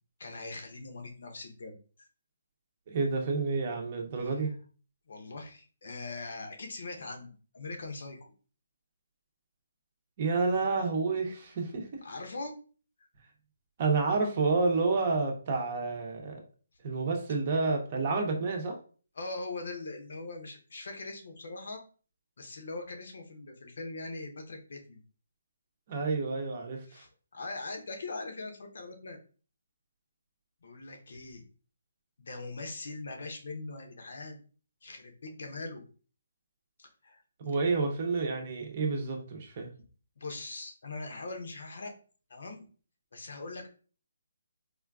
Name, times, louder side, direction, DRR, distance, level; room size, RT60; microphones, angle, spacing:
voice 1, 0.2-2.1 4.2-4.5 5.1-8.3 12.0-12.5 19.2-21.8 22.4-25.0 26.9-29.2 30.6-31.4 32.2-34.4 34.8-35.8 36.8-37.2 40.2-41.9 42.3-42.6 43.1-43.7, left 3 dB, 65° left, 3 dB, 0.7 m, -41 dB
voice 2, 2.9-4.5 10.2-11.9 13.8-16.4 16.8-18.7 25.9-27.0 37.4-39.7, right 4 dB, 35° right, 2 dB, 0.7 m, -29 dB
3.7 x 2.4 x 2.3 m, 0.39 s
hypercardioid pair, 165°, 0 cm